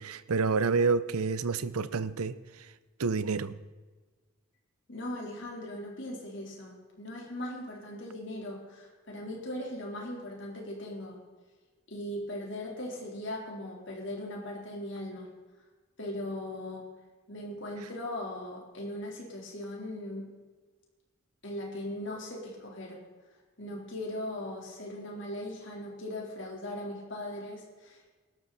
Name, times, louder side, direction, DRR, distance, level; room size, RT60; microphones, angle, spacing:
voice 1, 0.0-2.3 3.0-3.5, right 4 dB, 80° right, 16 dB, 0.7 m, -28 dB
voice 2, 4.9-11.2 11.9-15.3 16.0-16.9 17.3-20.3 21.4-23.0 23.6-28.2, left 1 dB, 55° left, -2 dB, 3.8 m, -39 dB
18.0 x 12.5 x 4.2 m, 1.3 s
head